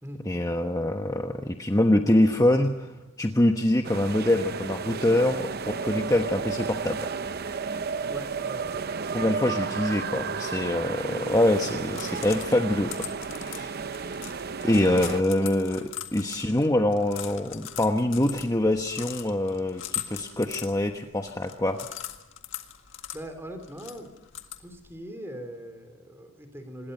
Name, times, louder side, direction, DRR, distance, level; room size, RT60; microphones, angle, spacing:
voice 1, 0.2-7.1 9.1-12.9 13.3-13.8 14.6-21.8, left 1 dB, 15° left, 4 dB, 1.1 m, -25 dB
sound 1, 3.8-15.2, right 5 dB, 50° right, 0.7 m, -33 dB
voice 2, 8.1-8.8 23.1-24.1 24.6-26.9, equal, 10° right, 7 dB, 3.5 m, -41 dB
sound 2, 11.9-25.0, left 11 dB, 60° left, 1.9 m, -41 dB
26.0 x 21.0 x 5.5 m, 0.99 s
head